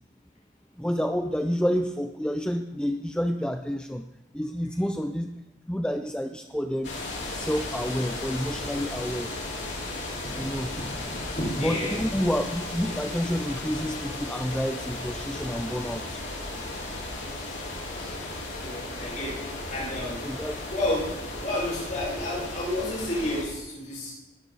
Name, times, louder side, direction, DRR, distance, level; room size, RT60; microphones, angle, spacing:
voice 1, 0.8-4.1 4.3-6.9 7.3-9.3 10.4-10.7 11.6-16.2 18.0-18.2 20.2-20.6, equal, 5° left, 6 dB, 0.5 m, -29 dB
sound 1, 6.8-23.4, left 2 dB, 85° left, 3.7 m, -35 dB
voice 2, 10.2-12.0 18.6-19.4 19.7-20.2 20.7-21.0 21.4-24.1, left 1 dB, 40° left, -5 dB, 5.8 m, -31 dB
20.0 x 12.5 x 4.1 m, 1.0 s
head